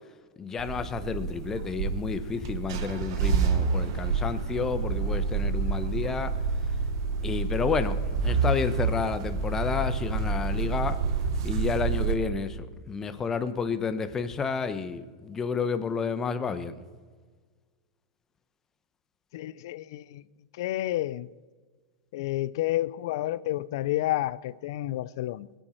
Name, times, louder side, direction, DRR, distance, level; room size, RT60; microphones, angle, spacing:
voice 1, 0.4-6.3 7.2-11.0 11.4-16.7, left 5 dB, 20° left, 0.9 m, -30 dB
sound 1, 0.6-12.1, right 5 dB, 70° right, 1.2 m, -28 dB
voice 2, 19.3-20.2 20.5-21.3 22.1-25.5, left 15 dB, 70° left, 0.4 m, -30 dB
21.0 x 9.2 x 4.4 m
supercardioid pair, 130°, 2 cm